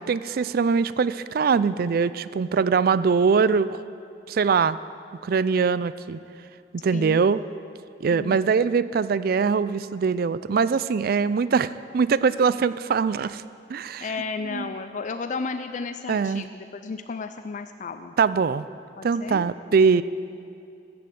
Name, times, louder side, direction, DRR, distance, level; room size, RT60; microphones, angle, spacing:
voice 1, 0.1-3.8 4.3-4.8 5.2-6.2 6.7-7.4 8.0-13.4 13.7-14.0 14.5-14.7 16.1-16.5 18.2-18.6 19.0-20.0, right 5 dB, 55° right, 16 dB, 0.4 m, -22 dB
voice 2, 14.0-18.1 19.0-20.0, left 4 dB, 45° left, 9 dB, 0.4 m, -33 dB
15.0 x 6.7 x 7.8 m, 2.5 s
head